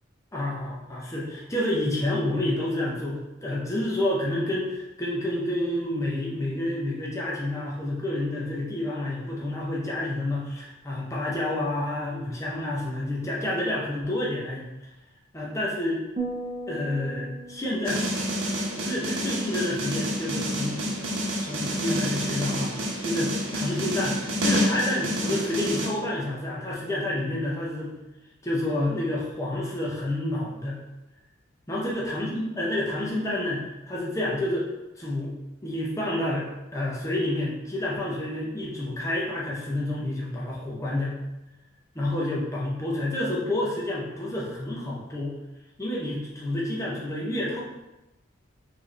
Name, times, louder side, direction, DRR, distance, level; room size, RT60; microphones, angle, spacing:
voice 1, 0.3-14.7 15.3-16.0 16.7-18.0 18.8-20.9 21.4-22.7 23.0-27.9 28.4-30.8 31.7-34.7 35.0-35.3 35.6-41.2 41.9-45.4 45.8-47.6, left 1 dB, 15° left, -5 dB, 0.6 m, -29 dB
sound 1, 16.2-19.6, right 2 dB, 35° right, 0.7 m, -38 dB
sound 2, 17.8-25.9, equal, 75° right, 0.9 m, -28 dB
4.2 x 3.2 x 3.2 m, 1.0 s
head